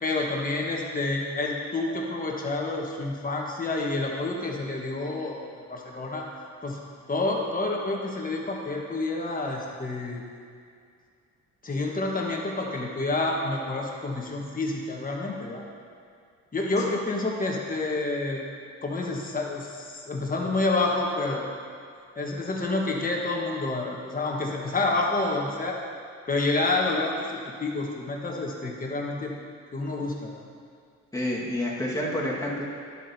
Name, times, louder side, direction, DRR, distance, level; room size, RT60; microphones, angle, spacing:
voice 1, 0.0-5.4 5.7-6.3 6.6-6.8 7.1-10.2 11.6-15.6 16.5-18.4 18.8-21.4 22.2-25.8 26.3-29.3 29.7-30.4, left 2 dB, 30° left, -1 dB, 1.3 m, -28 dB
voice 2, 31.1-32.6, left 1 dB, 10° left, -5 dB, 1.7 m, -28 dB
11.0 x 7.4 x 2.8 m, 2.3 s
cardioid pair, 90°, 30 cm